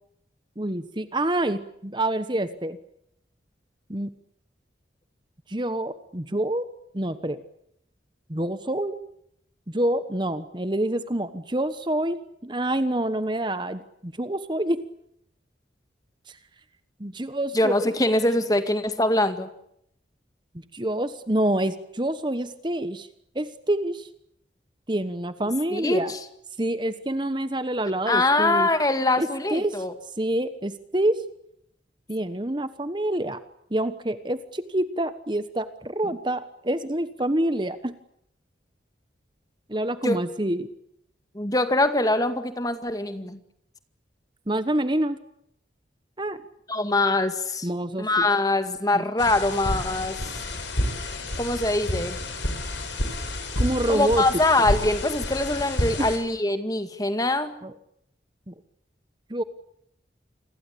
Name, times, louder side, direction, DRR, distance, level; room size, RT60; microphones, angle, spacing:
voice 1, 0.6-2.8 3.9-4.1 5.5-6.7 6.9-7.4 8.3-9.0 9.7-14.8 16.3-16.4 17.0-17.9 20.7-23.1 23.3-24.1 24.9-26.1 26.6-28.7 29.2-29.8 30.2-31.2 32.1-33.4 33.7-37.9 39.7-40.7 44.5-45.2 46.2-46.4 47.6-48.1 48.9-49.0 53.6-54.2 56.0-56.1 57.6-57.7 58.5-58.6 59.3-59.4, right 1 dB, 25° right, 12 dB, 1.2 m, -27 dB
voice 2, 17.5-19.5 25.7-26.2 28.1-29.9 40.0-40.2 41.3-43.4 46.7-47.7 48.0-50.4 51.4-52.2 53.9-57.5, left 2 dB, 20° left, 9 dB, 2.0 m, -23 dB
sound 1, 49.2-56.2, left 1 dB, 85° left, 7.0 m, -29 dB
28.5 x 22.0 x 8.6 m, 0.73 s
head